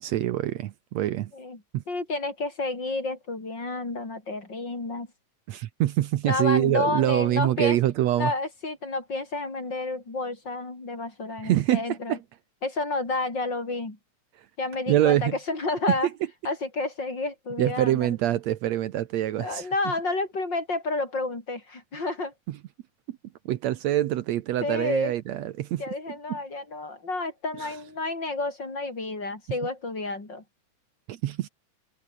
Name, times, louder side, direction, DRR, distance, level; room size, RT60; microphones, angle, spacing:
voice 1, 0.0-1.3 1.7-1.8 5.5-8.3 11.4-12.2 14.9-15.3 17.6-19.7 23.1-23.2 23.5-25.8 26.3-26.4 31.1-31.5, right 13 dB, 70° right, 2.0 m, -25 dB
voice 2, 1.9-5.1 6.2-7.8 8.2-12.2 12.6-14.0 14.6-16.1 16.4-18.2 19.4-22.3 24.6-25.1 25.8-30.4, left 3 dB, 35° left, 5.6 m, -30 dB
omnidirectional pair, 3.4 m